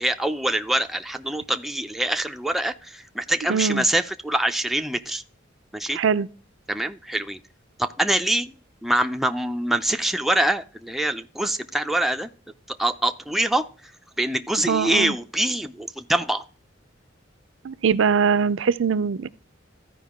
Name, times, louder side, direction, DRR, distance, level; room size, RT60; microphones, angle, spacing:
voice 1, 0.0-5.2 5.7-6.0 6.7-7.4 7.8-8.5 8.8-12.3 12.7-13.7 14.2-16.4, right 1 dB, ahead, 0.4 m, -24 dB
voice 2, 3.5-3.8 5.9-6.3 14.7-15.1 17.6-19.3, right 6 dB, 75° right, 0.4 m, -22 dB
14.0 x 5.0 x 3.6 m
head